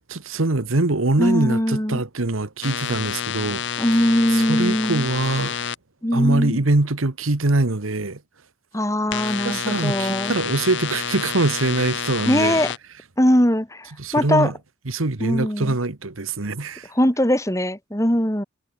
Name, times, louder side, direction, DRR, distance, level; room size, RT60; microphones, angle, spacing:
voice 1, 0.1-3.6 4.3-5.6 6.1-8.2 9.4-12.6 14.0-14.5 14.9-16.9, right 2 dB, 80° right, 1.4 m, -23 dB
voice 2, 1.2-2.0 3.8-5.1 6.0-6.6 8.7-10.4 12.3-12.7 13.2-14.5 15.2-15.8 16.9-18.4, equal, 15° left, 3.1 m, -21 dB
sound 1, 2.6-5.8 9.1-12.8, left 7 dB, 60° left, 0.9 m, -28 dB
head